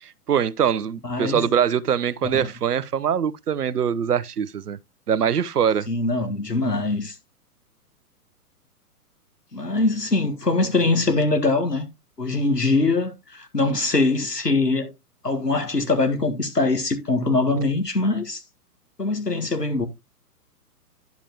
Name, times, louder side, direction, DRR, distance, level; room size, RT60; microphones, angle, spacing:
voice 1, 0.0-4.8 5.1-5.9, right 8 dB, 75° right, 0.7 m, -23 dB
voice 2, 1.0-1.5 2.3-2.5 5.9-7.1 9.5-11.9 12.2-14.9 15.2-18.4 19.0-19.9, left 3 dB, 90° left, 1.8 m, -22 dB
10.5 x 7.2 x 2.9 m
figure-of-eight pair, 115°, 47 cm